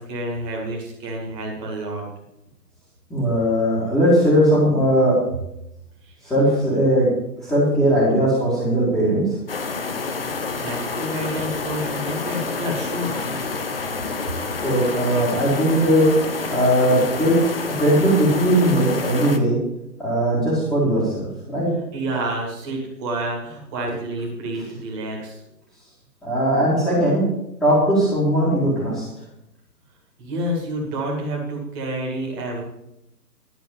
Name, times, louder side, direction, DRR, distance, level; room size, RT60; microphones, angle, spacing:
voice 1, 0.0-2.1 6.0-6.3 10.3-13.5 21.9-25.4 30.2-32.6, right 1 dB, 15° right, -2 dB, 2.0 m, -29 dB
voice 2, 3.1-5.2 6.2-7.1 7.4-9.3 14.6-16.1 16.5-17.4 17.8-19.6 20.0-21.7 26.2-27.2 27.6-29.1, equal, 5° left, -12 dB, 1.8 m, -19 dB
sound 1, 9.5-19.4, left 4 dB, 35° left, 0.9 m, -28 dB
12.0 x 6.6 x 7.0 m, 0.82 s
figure-of-eight pair, 145°, 49 cm